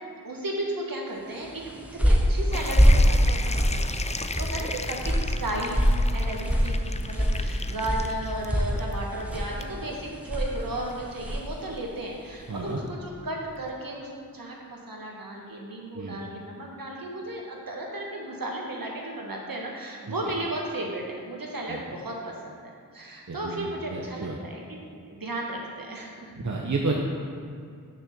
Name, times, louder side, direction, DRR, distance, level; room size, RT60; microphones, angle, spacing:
voice 1, 0.2-1.6 1.9-26.4, right 1 dB, 75° right, -1 dB, 1.6 m, -35 dB
sound 1, 1.5-11.6, equal, 5° right, 1.1 m, -25 dB
sound 2, 2.5-13.8, left 3 dB, 20° left, 0.4 m, -38 dB
voice 2, 12.5-12.8 15.9-16.2 20.1-20.2 21.7-21.8 23.3-24.4 26.4-27.0, right 3 dB, 55° right, -1 dB, 0.9 m, -31 dB
6.6 x 6.4 x 6.8 m, 2.3 s
wide cardioid pair, 65°, 34 cm